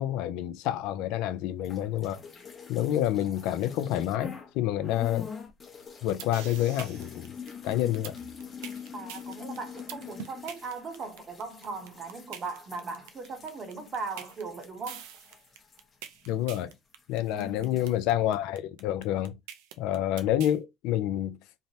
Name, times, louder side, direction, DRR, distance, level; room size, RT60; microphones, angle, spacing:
voice 1, 0.0-2.2 2.7-5.3 6.0-7.4 7.6-8.1 16.3-16.7 17.1-19.4 19.8-21.4, left 12 dB, 70° left, 0.4 m, -28 dB
sound 1, 1.6-4.5 4.8-16.7 17.0-17.9, left 6 dB, 30° left, 0.7 m, -45 dB
sound 2, 5.9-20.6, right 10 dB, 85° right, 0.5 m, -44 dB
voice 2, 8.9-15.0 17.3-17.8, right 4 dB, 40° right, 0.8 m, -38 dB
3.2 x 2.0 x 2.7 m
supercardioid pair, 95°, 0 cm